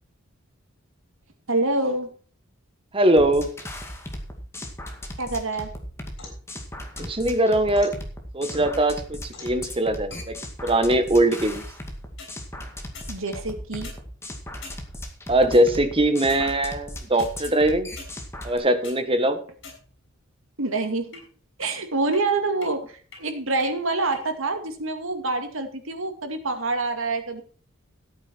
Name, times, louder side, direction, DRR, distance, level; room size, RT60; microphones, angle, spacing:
voice 1, 1.5-2.1 5.2-5.7 13.1-13.9 20.6-21.2 21.6-27.4, right 3 dB, 70° right, 6 dB, 2.3 m, -26 dB
voice 2, 2.9-3.5 7.0-8.0 8.3-11.6 15.3-17.9 18.4-19.4, right 1 dB, 25° right, 9 dB, 1.4 m, -21 dB
sound 1, 3.2-18.6, left 1 dB, 10° left, 2.1 m, -37 dB
sound 2, 5.5-6.5 7.0-8.0 8.5-9.0 9.3-9.6 10.1-10.3 12.0-12.3 12.9-13.1 13.7-14.0 14.6-14.8 15.5-15.6 16.2-16.5 17.2-17.3 18.0-18.1 18.6-19.0 19.6-20.1 21.1-21.2 21.6-21.7 22.1-22.2 22.6-22.7 23.1-23.2 23.6-23.7 24.1-24.2, left 3 dB, 60° left, 6.9 m, -43 dB
15.0 x 9.0 x 4.5 m, 0.42 s
head